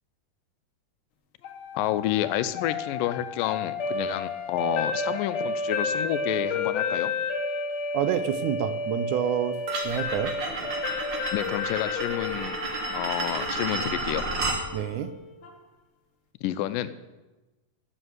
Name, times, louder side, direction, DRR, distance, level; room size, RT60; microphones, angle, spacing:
sound 1, 1.4-15.5, left 4 dB, 65° left, 1.3 m, -32 dB
voice 1, 1.7-7.1 11.3-12.6 12.9-14.3 16.4-16.9, left 13 dB, 85° left, 13 dB, 2.3 m, -29 dB
voice 2, 7.9-10.4 14.7-15.2, right 10 dB, 80° right, 13 dB, 1.9 m, -28 dB
sound 2, 9.7-14.6, right 3 dB, 55° right, 1.3 m, -32 dB
11.0 x 7.0 x 7.9 m, 1.1 s
omnidirectional pair, 3.8 m